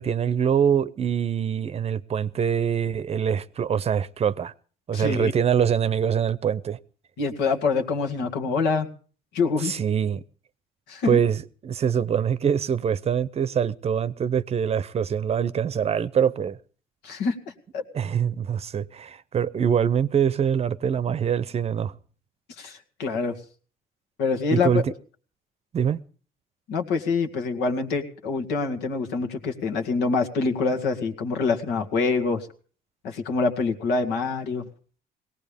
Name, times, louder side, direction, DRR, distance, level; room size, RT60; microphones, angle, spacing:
voice 1, 0.0-4.5 4.9-6.8 9.6-10.2 11.0-16.6 17.9-21.9 24.5-24.9 25.7-26.0, right 8 dB, 35° right, 0.7 m, -24 dB
voice 2, 4.9-5.3 7.2-8.9 9.3-9.7 10.9-11.2 17.0-17.4 17.7-17.8 22.6-23.3 24.2-24.8 26.7-32.5 33.0-34.6, left 4 dB, 85° left, 2.1 m, -25 dB
21.0 x 18.0 x 3.5 m
cardioid pair, 110°, 17 cm